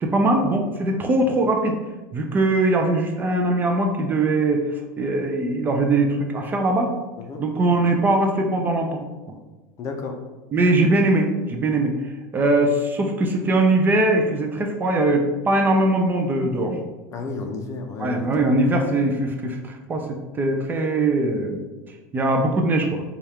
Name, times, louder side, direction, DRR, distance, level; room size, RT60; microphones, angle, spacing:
voice 1, 0.0-1.8 2.1-6.9 7.4-9.0 10.5-16.7 18.0-21.6 22.1-23.0, right 2 dB, 20° right, 3 dB, 0.4 m, -21 dB
voice 2, 9.8-10.2 16.5-16.8 17.1-18.5, left 3 dB, 35° left, 3 dB, 0.5 m, -32 dB
4.2 x 2.4 x 3.4 m, 1.2 s
supercardioid pair, 135°, 9 cm